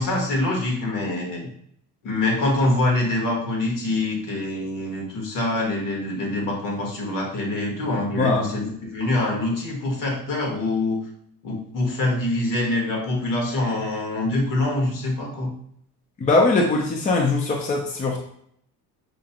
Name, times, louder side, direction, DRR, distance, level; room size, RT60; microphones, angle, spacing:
voice 1, 0.0-1.5 2.0-11.0 11.4-15.5, left 2 dB, 60° left, 0 dB, 1.2 m, -25 dB
voice 2, 8.2-8.5 16.2-18.2, left 3 dB, 20° left, 1 dB, 0.4 m, -21 dB
5.0 x 2.2 x 2.8 m, 0.68 s
cardioid pair, 140°, 36 cm